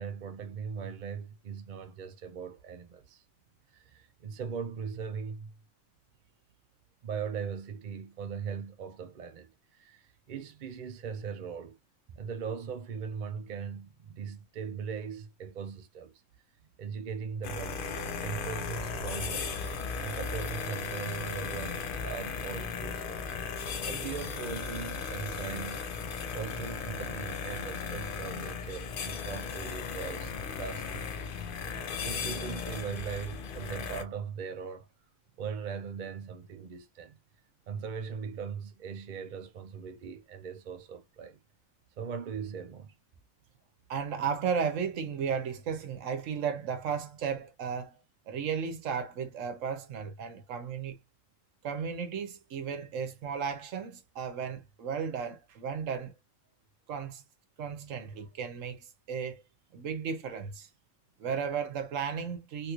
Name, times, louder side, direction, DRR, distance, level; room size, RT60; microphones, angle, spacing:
voice 1, 0.0-3.2 3.7-5.5 7.0-11.8 12.1-16.1 16.8-19.6 20.0-23.2 23.8-25.9 26.3-31.3 31.7-34.9 35.4-37.2 37.7-41.4 42.0-42.9, right 6 dB, 60° right, 0.5 m, -39 dB
sound 1, 17.4-34.0, left 5 dB, 55° left, 0.6 m, -36 dB
voice 2, 43.9-48.0 48.3-50.9 51.6-56.1 56.9-57.2 57.6-59.4 59.7-60.7 61.2-62.7, right 6 dB, 75° right, 1.1 m, -34 dB
3.4 x 2.9 x 2.4 m
omnidirectional pair, 1.4 m